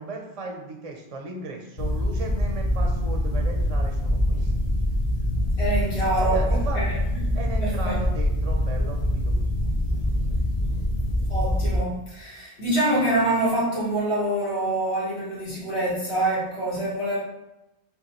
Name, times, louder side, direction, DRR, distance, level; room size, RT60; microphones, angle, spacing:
voice 1, 0.0-4.8 6.2-6.9 7.3-9.5, right 3 dB, 45° right, 2 dB, 0.5 m, -36 dB
sound 1, 1.8-11.8, left 1 dB, 45° left, 0.6 m, -24 dB
voice 2, 5.6-6.9 7.2-8.0 11.3-17.2, right 1 dB, 85° left, -9 dB, 1.7 m, -26 dB
6.5 x 2.3 x 2.9 m, 0.94 s
omnidirectional pair, 1.1 m